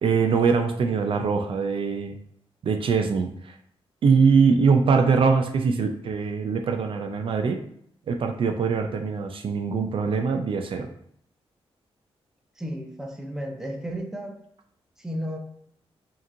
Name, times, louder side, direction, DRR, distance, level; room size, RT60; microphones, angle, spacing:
voice 1, 0.0-2.2 2.6-3.5 4.0-7.6 8.1-10.9, right 5 dB, 60° right, 5 dB, 0.4 m, -22 dB
voice 2, 12.6-14.4 15.0-15.4, equal, 5° right, 1 dB, 0.6 m, -33 dB
5.0 x 2.9 x 2.6 m, 0.67 s
wide cardioid pair, 135°, 10 cm